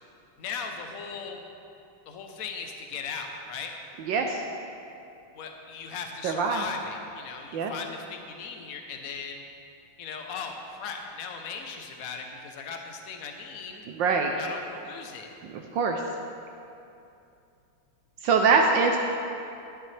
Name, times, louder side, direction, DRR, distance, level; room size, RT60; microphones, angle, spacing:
voice 1, 0.4-1.4 2.1-3.7 5.3-9.4 10.0-13.9 14.3-15.3, left 5 dB, 65° left, 4 dB, 0.9 m, -38 dB
voice 2, 4.1-4.4 6.2-6.6 7.5-7.7 14.0-14.3 15.7-16.0 18.2-19.0, right 4 dB, 75° right, 3 dB, 1.2 m, -23 dB
11.5 x 9.6 x 3.3 m, 2.7 s
omnidirectional pair, 2.4 m